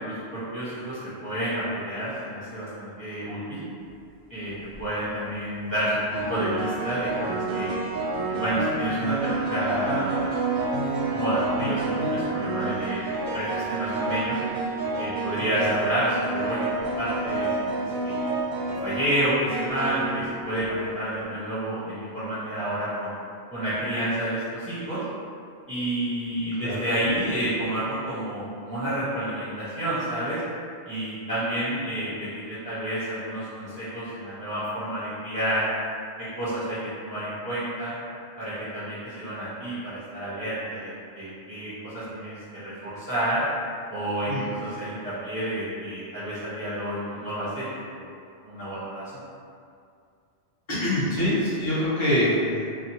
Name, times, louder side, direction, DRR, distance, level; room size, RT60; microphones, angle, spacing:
voice 1, 0.0-3.7 4.3-4.5 4.8-7.7 8.3-10.8 11.1-13.0 13.3-14.4 15.0-16.7 17.0-18.2 18.8-23.1 23.5-25.0 25.7-30.4 30.9-35.7 36.2-38.0 38.4-43.4 43.9-44.3 44.6-47.6 47.9-48.1 48.4-49.2, right 1 dB, 25° right, -14 dB, 0.5 m, -29 dB
sound 1, 4.5-4.9 6.1-21.0, right 3 dB, 60° right, 0.6 m, -29 dB
voice 2, 50.7-52.6, left 1 dB, 30° left, -10 dB, 0.7 m, -24 dB
2.8 x 2.0 x 2.7 m, 2.4 s
omnidirectional pair, 1.2 m